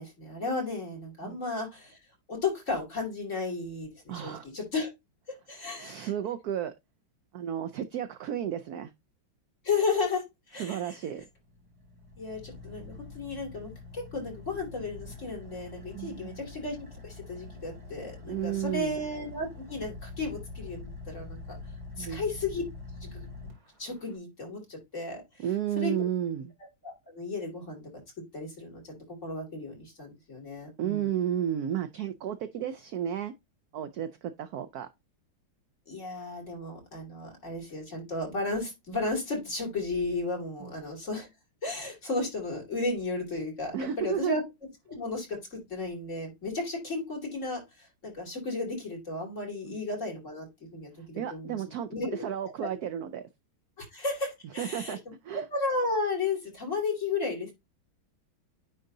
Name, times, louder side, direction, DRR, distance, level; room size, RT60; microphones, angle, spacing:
voice 1, 0.0-2.0 2.3-4.9 5.5-6.1 9.6-11.0 12.2-16.8 17.0-21.6 22.0-22.6 23.0-23.3 23.8-25.2 25.8-25.9 26.8-27.9 28.3-31.1 35.9-41.3 41.6-44.4 44.9-51.6 51.9-52.3 52.6-52.7 53.8-55.0 55.5-57.5, left 3 dB, 35° left, 3.1 m, -34 dB
voice 2, 4.1-4.5 5.8-6.7 7.3-8.9 10.6-11.2 15.9-16.4 18.3-19.0 22.0-22.2 25.4-26.5 30.8-33.3 33.7-34.9 40.6-40.7 43.7-44.4 49.7-49.8 51.2-53.2 54.6-55.0 55.2-55.4, right 10 dB, 80° right, 0.8 m, -32 dB
Car / Idling, 11.2-24.2, left 3 dB, 15° right, 1.9 m, -45 dB
9.9 x 3.8 x 2.7 m
omnidirectional pair, 2.2 m